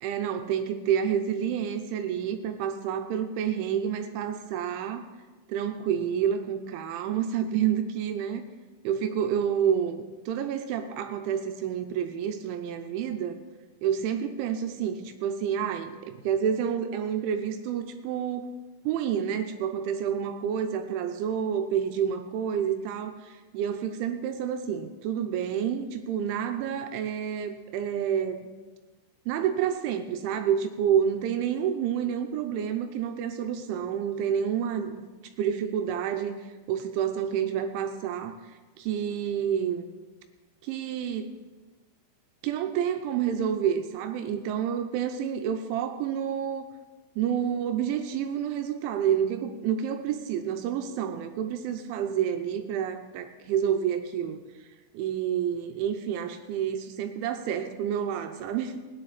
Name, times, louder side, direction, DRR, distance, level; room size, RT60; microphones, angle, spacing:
voice 1, 0.0-5.1 5.5-8.4 8.8-13.4 13.8-18.5 18.9-28.5 29.3-34.9 35.4-36.4 36.7-38.3 38.8-39.9 40.6-41.3 42.4-46.6 47.2-54.4 54.9-58.8, right 8 dB, 80° right, 7 dB, 3.0 m, -29 dB
17.5 x 10.0 x 4.0 m, 1.3 s
omnidirectional pair, 5.6 m